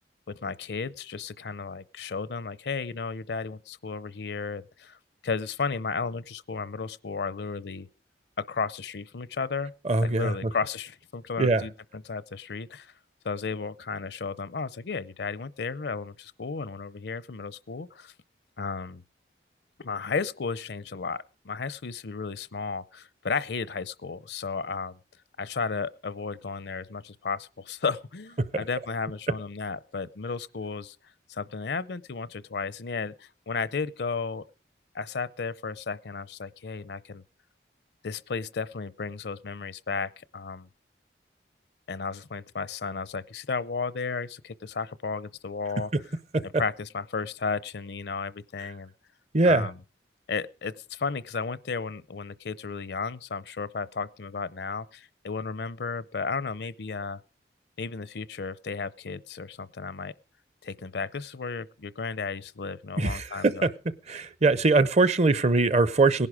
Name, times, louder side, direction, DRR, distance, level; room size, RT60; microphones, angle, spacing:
voice 1, 0.3-5.0 5.2-7.9 8.4-9.7 10.0-12.9 13.2-18.1 18.6-19.0 19.8-25.0 25.4-31.0 31.3-34.4 34.9-37.2 38.0-40.7 41.9-45.9 46.4-48.9 49.4-49.8 50.3-57.2 57.8-60.1 60.6-63.7, left 4 dB, 70° left, 0.6 m, -33 dB
voice 2, 9.8-10.3 11.4-11.6 46.3-46.4 49.3-49.7 63.0-63.7 64.1-66.3, right 3 dB, 35° right, 0.7 m, -22 dB
18.0 x 11.0 x 4.9 m
head